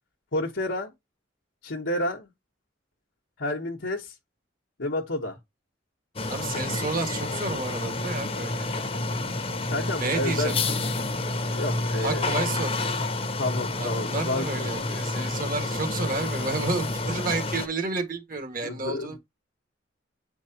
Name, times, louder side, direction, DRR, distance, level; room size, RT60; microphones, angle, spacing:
voice 1, 0.3-0.9 1.6-2.3 3.4-4.1 4.8-5.4 8.9-9.0 9.3-10.6 11.4-12.4 13.4-14.7 15.2-15.3 18.6-19.2, left 1 dB, 80° left, 1.2 m, -30 dB
sound 1, 6.2-17.7, left 2 dB, 30° left, 0.9 m, -29 dB
voice 2, 6.3-8.7 10.0-10.6 12.0-12.8 13.8-19.2, right 3 dB, 45° right, 1.7 m, -31 dB
8.0 x 4.6 x 2.8 m
head